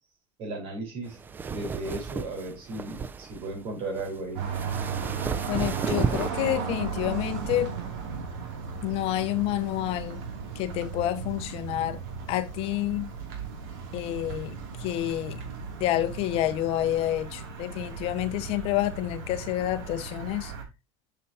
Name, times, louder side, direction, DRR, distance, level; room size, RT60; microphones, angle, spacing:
voice 1, 0.4-1.2 1.5-4.4, right 2 dB, 45° right, 4.4 m, -35 dB
sound 1, 1.1-6.3, right 5 dB, 15° right, 0.3 m, -33 dB
sound 2, 4.4-20.6, right 6 dB, 70° right, 2.7 m, -36 dB
voice 2, 5.5-7.7 8.8-10.2 10.6-12.0 12.3-13.1 13.9-15.4 15.8-20.5, left 14 dB, 50° left, 0.6 m, -28 dB
7.2 x 6.8 x 2.8 m
cardioid pair, 165°, 13 cm